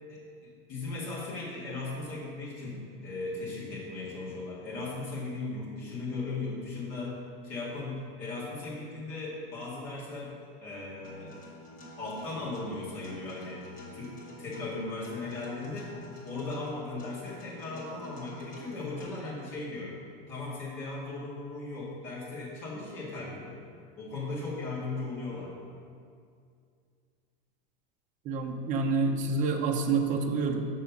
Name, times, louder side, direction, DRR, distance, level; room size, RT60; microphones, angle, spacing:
voice 1, 0.1-7.2 7.4-10.3 10.6-11.4 12.0-13.6 13.9-15.9 16.2-19.9 20.3-23.6 24.0-25.5, left 3 dB, 45° left, -6 dB, 2.1 m, -37 dB
Acoustic guitar, 11.0-19.0, left 1 dB, 25° left, 1.4 m, -48 dB
voice 2, 28.3-30.7, right 4 dB, 25° right, 3 dB, 0.6 m, -28 dB
6.4 x 5.6 x 5.9 m, 2.3 s
supercardioid pair, 160°, 30 cm